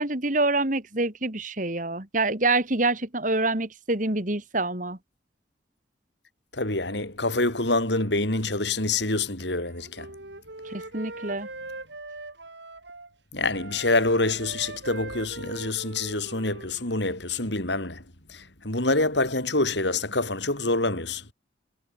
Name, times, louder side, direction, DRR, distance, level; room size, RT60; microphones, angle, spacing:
voice 1, 0.0-5.0 10.6-11.5, right 2 dB, 45° right, 2.7 m, -26 dB
voice 2, 6.5-10.1 13.3-18.0 18.3-21.2, left 2 dB, 70° left, 5.4 m, -26 dB
Wind instrument woodwind instrument, 9.5-13.1 13.4-17.1, right 2 dB, 70° right, 6.3 m, -41 dB
head